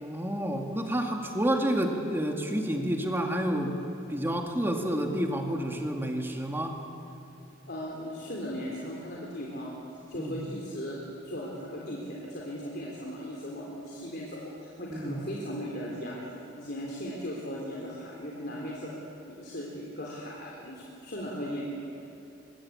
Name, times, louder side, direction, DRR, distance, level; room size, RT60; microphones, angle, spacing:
voice 1, 0.0-3.8 4.1-6.8 10.1-10.4 14.9-15.2, right 1 dB, 10° right, 2 dB, 2.2 m, -29 dB
voice 2, 7.7-9.7 10.1-11.0 11.2-16.2 16.6-18.9 19.3-21.6, equal, 50° left, -3 dB, 3.6 m, -37 dB
23.5 x 23.0 x 8.6 m, 2.8 s
head